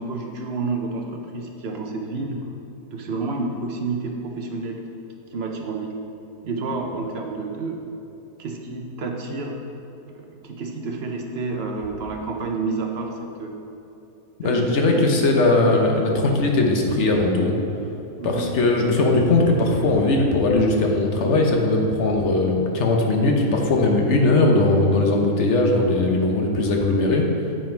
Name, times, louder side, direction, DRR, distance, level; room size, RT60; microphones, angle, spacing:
voice 1, 0.0-2.5 2.9-4.8 5.3-6.0 6.4-7.8 8.4-9.6 10.1-13.6 14.4-15.0 18.2-18.5, right 3 dB, 55° right, 1 dB, 0.7 m, -29 dB
voice 2, 14.4-17.5 18.2-27.3, left 2 dB, 50° left, 1 dB, 1.0 m, -19 dB
7.7 x 5.6 x 4.5 m, 2.9 s
omnidirectional pair, 1.8 m